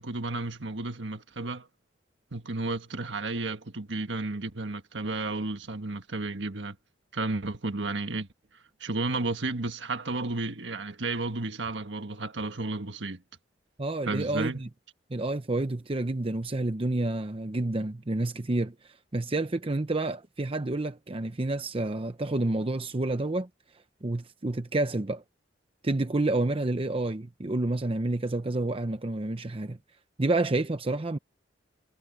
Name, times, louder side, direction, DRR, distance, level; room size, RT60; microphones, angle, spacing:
voice 1, 0.0-1.7 2.3-6.8 7.1-8.3 8.8-13.2 14.1-14.6, right 2 dB, 75° right, 1.6 m, -32 dB
voice 2, 13.8-14.7 15.1-23.5 24.0-25.2 25.8-29.8 30.2-31.2, right 2 dB, 30° right, 0.8 m, -29 dB
head